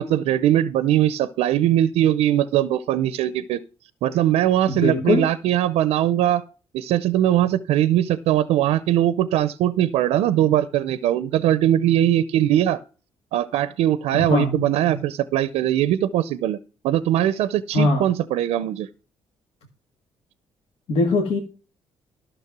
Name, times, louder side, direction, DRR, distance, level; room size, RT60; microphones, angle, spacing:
voice 1, 0.0-3.6 4.0-6.4 6.7-12.8 13.3-16.6 16.8-18.9, right 12 dB, 85° right, 0.5 m, -21 dB
voice 2, 4.7-5.3 14.1-15.0 17.7-18.1 20.9-21.4, left 2 dB, 80° left, 1.8 m, -21 dB
12.0 x 6.3 x 6.0 m
cardioid pair, 80°, 10 cm